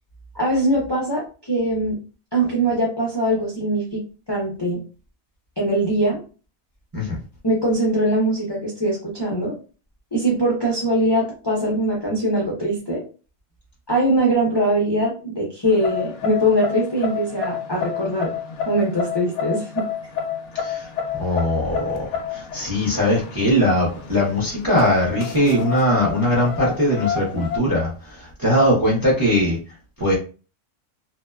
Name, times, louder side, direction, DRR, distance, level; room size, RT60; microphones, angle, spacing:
voice 1, 0.3-2.0 2.3-4.0 4.3-4.8 5.6-6.2 7.4-9.5 10.1-13.0 13.9-18.3 18.7-19.8, right 1 dB, 35° left, -5 dB, 0.4 m, -22 dB
sound 1, 15.7-27.6, left 7 dB, 65° left, 0.8 m, -29 dB
voice 2, 20.5-20.9 21.2-29.6 30.0-30.1, left 1 dB, 20° right, -4 dB, 0.5 m, -20 dB
2.7 x 2.2 x 2.2 m, 0.35 s
omnidirectional pair, 1.5 m